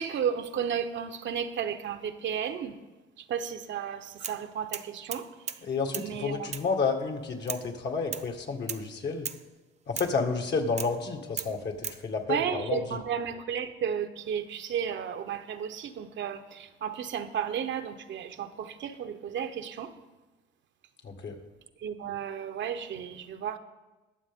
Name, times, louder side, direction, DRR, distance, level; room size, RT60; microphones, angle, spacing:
voice 1, 0.0-2.7 3.3-5.2 6.0-6.3 12.3-16.4 16.8-19.9 21.8-23.6, right 8 dB, 70° right, 9 dB, 0.8 m, -33 dB
sound 1, 4.2-4.4 4.7-5.6 5.9-6.1 6.5-6.7 7.5-7.7 8.1-8.3 8.7-8.9 9.3-9.5 10.0-10.2 10.8-11.0 11.4-12.0, right 6 dB, 35° right, 0.6 m, -36 dB
voice 2, 5.6-9.3 9.9-13.0 21.0-21.4, left 4 dB, 60° left, 4 dB, 1.8 m, -31 dB
21.0 x 7.2 x 3.6 m, 1.1 s
cardioid pair, 90°, 20 cm